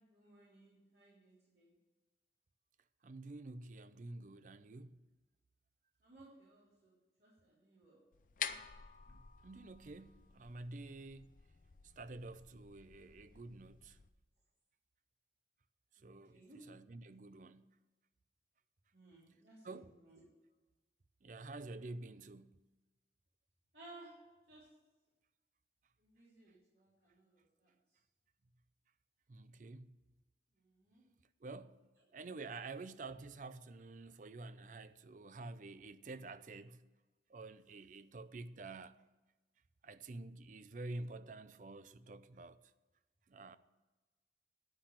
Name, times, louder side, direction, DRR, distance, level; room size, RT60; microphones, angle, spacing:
voice 1, 0.0-1.7 6.0-8.0 16.0-16.7 18.9-20.2 23.7-24.8 26.0-27.7 30.6-31.0, right 2 dB, 65° right, 3.4 m, -60 dB
voice 2, 3.0-5.0 9.1-11.4 11.8-14.0 16.0-17.8 19.6-19.9 21.2-22.6 29.3-30.0 31.4-31.9 32.1-36.9 37.3-39.0 39.8-42.6 43.3-43.6, right 2 dB, 45° right, 0.5 m, -49 dB
sound 1, 8.1-14.1, left 8 dB, 50° left, 0.5 m, -49 dB
10.5 x 5.8 x 8.7 m
head